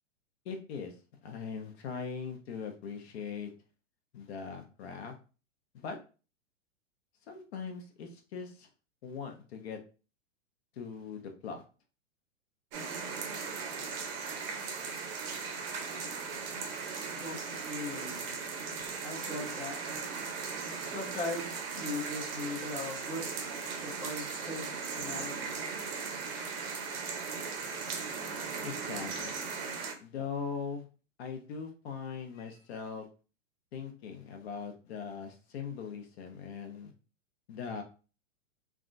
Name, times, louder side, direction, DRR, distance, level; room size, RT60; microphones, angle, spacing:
voice 1, 0.4-0.9 1.2-3.5 4.1-5.1 5.7-6.0 7.3-8.7 9.0-9.8 10.7-11.6 28.6-29.4 30.0-30.8 31.2-33.1 33.7-36.9 37.5-37.8, left 6 dB, 55° left, 4 dB, 0.8 m, -40 dB
sound 1, 12.7-29.9, right 5 dB, 45° right, 0.7 m, -38 dB
voice 2, 17.2-18.5 19.0-19.8 20.8-23.4 23.8-25.5, left 2 dB, ahead, -8 dB, 0.5 m, -39 dB
3.5 x 2.2 x 2.5 m, 0.35 s
hypercardioid pair, 150°, 39 cm